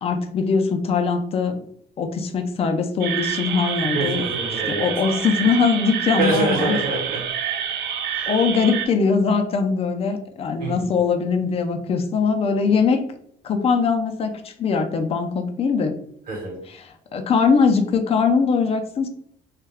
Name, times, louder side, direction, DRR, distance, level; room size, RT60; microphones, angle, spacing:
voice 1, 0.0-1.6 2.0-4.2 4.7-6.8 8.3-13.0 13.4-16.0 16.7-19.1, left 5 dB, 35° left, 6 dB, 0.4 m, -21 dB
sound 1, 3.0-8.9, right 8 dB, 85° right, 0.4 m, -27 dB
voice 2, 3.9-4.9 6.2-7.2 8.1-8.3 10.6-10.9 16.3-16.6, right 2 dB, 60° right, -3 dB, 1.0 m, -25 dB
2.3 x 2.2 x 3.3 m, 0.66 s
cardioid pair, 110°, 17 cm